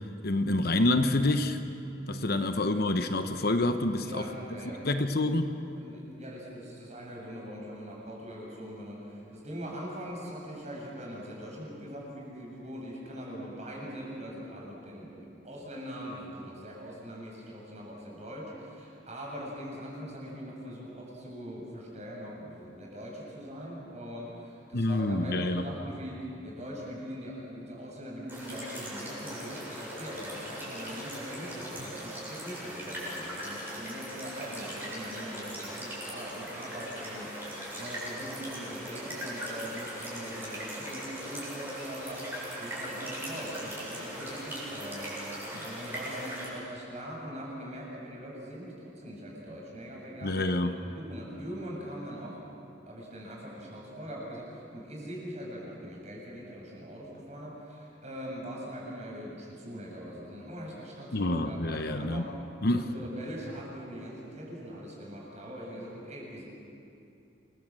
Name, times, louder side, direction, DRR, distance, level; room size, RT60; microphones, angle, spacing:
voice 1, 0.2-1.6 2.1-4.2 4.8-5.6 24.7-25.6 45.5-45.6 50.2-50.7 61.1-62.3 62.6-62.8, left 2 dB, 50° left, 8 dB, 1.0 m, -27 dB
voice 2, 2.2-2.5 4.0-5.3 5.7-50.5 50.8-52.4 52.8-62.3 62.7-66.5, equal, 35° right, -3 dB, 7.6 m, -42 dB
sound 1, 28.3-46.5, equal, 10° right, 7.5 m, -39 dB
28.0 x 22.5 x 7.7 m, 2.7 s
head